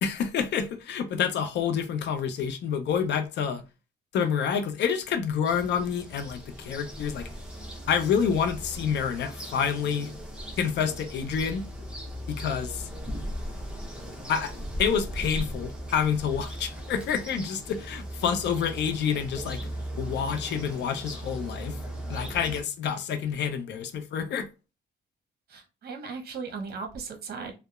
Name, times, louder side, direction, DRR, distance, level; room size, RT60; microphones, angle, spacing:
voice 1, 0.0-3.6 4.1-7.3 7.9-10.1 10.6-11.6 12.3-12.9 14.3-14.5 14.8-19.6 20.0-21.8 22.1-24.5, left 7 dB, 60° left, 0.5 m, -28 dB
sound 1, 5.5-22.6, equal, 5° right, 0.7 m, -38 dB
voice 2, 25.5-27.5, right 5 dB, 50° right, 0.8 m, -37 dB
2.8 x 2.1 x 2.3 m
cardioid pair, 90°, 20 cm